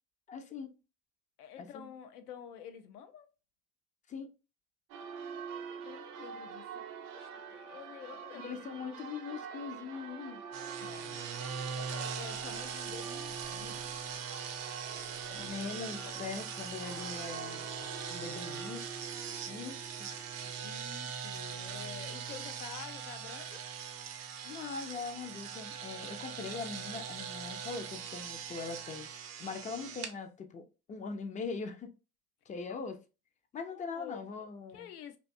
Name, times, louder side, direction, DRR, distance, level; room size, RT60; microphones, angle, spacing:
voice 1, 0.3-0.7 1.6-1.9 4.1-4.3 8.3-10.4 15.3-17.7 18.1-18.8 19.5-20.1 24.4-29.1 29.4-31.9 32.5-33.0 33.5-34.9, left 5 dB, 20° left, 0.3 m, -41 dB
voice 2, 1.4-3.3 5.4-8.5 10.8-13.9 14.9-16.3 20.4-23.7 32.7-32.8 33.7-34.3 34.7-35.2, left 8 dB, 85° left, 0.6 m, -49 dB
Church bell, 4.9-20.6, right 7 dB, 75° right, 0.7 m, -46 dB
sound 1, 10.5-30.1, right 7 dB, 40° right, 0.5 m, -41 dB
Bowed string instrument, 16.7-21.8, left 7 dB, 70° left, 1.0 m, -57 dB
2.5 x 2.4 x 2.5 m
hypercardioid pair, 70°, 44 cm